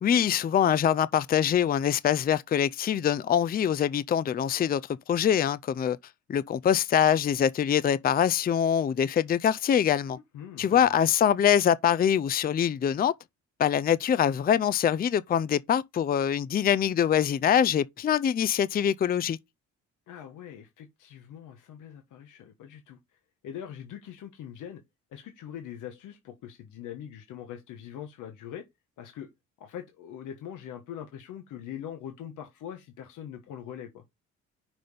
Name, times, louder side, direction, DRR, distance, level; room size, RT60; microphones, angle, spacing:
voice 1, 0.0-4.8 5.1-6.0 6.3-10.2 10.6-13.1 13.6-19.4, left 9 dB, 30° left, 0.4 m, -24 dB
voice 2, 10.1-10.9 20.1-23.0 23.4-24.8 25.1-28.6 29.0-29.3 29.6-34.0, left 9 dB, 85° left, 1.3 m, -42 dB
6.0 x 5.0 x 5.4 m
cardioid pair, 90°, 30 cm